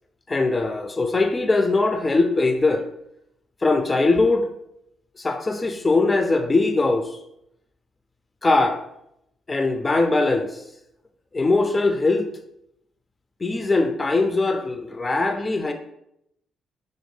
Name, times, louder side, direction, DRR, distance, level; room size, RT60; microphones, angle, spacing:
voice 1, 0.3-2.9 3.6-4.5 5.2-7.2 8.4-8.8 9.5-10.6 11.3-12.3 13.4-15.7, left 3 dB, 25° left, 5 dB, 0.3 m, -21 dB
5.1 x 2.2 x 3.2 m, 0.80 s
cardioid pair, 90°, 0 cm